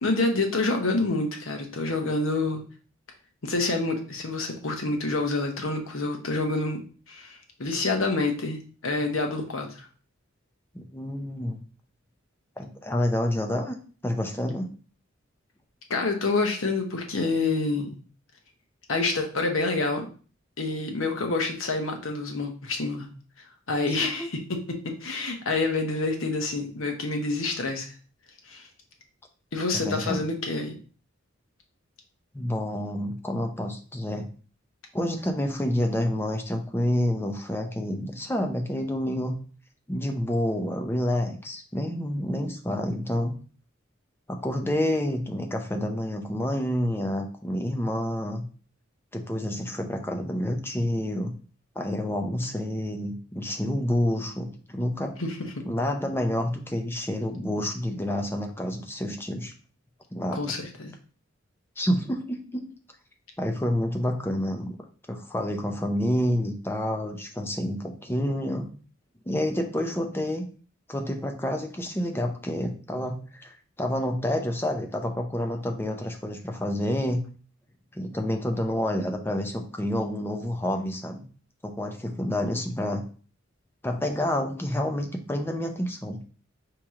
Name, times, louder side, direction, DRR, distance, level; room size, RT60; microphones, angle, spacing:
voice 1, 0.0-2.6 3.4-6.8 7.1-9.9 15.9-17.9 18.9-20.1 20.6-23.1 23.7-24.2 24.5-27.9 28.5-28.6 29.5-30.8 55.2-55.6 60.3-60.9, left 3 dB, 80° left, 3 dB, 1.0 m, -27 dB
voice 2, 10.7-11.6 12.6-13.8 14.0-14.7 23.9-24.3 29.7-30.2 32.3-34.3 34.9-39.4 39.9-43.4 44.3-48.4 49.1-51.4 51.8-55.2 55.7-59.5 60.1-60.5 61.8-62.7 63.4-64.8 65.1-68.7 69.3-70.5 70.9-77.3 77.9-81.2 81.6-83.0 83.8-86.2, left 1 dB, 10° left, 4 dB, 0.6 m, -28 dB
4.6 x 3.0 x 3.6 m, 0.40 s
head